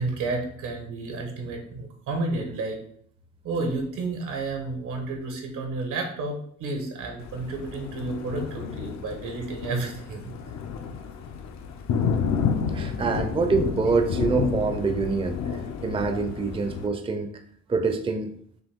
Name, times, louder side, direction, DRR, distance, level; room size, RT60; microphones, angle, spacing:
voice 1, 0.0-2.8 3.4-6.3 6.6-10.3 13.0-13.3, right 3 dB, 85° right, 3 dB, 1.3 m, -31 dB
Thunder, 7.2-16.9, left 6 dB, 65° left, 0.6 m, -30 dB
voice 2, 12.7-15.4 15.8-17.3 17.7-18.3, right 4 dB, 20° right, 7 dB, 0.5 m, -25 dB
6.1 x 2.4 x 3.5 m, 0.62 s
cardioid pair, 90°, 30 cm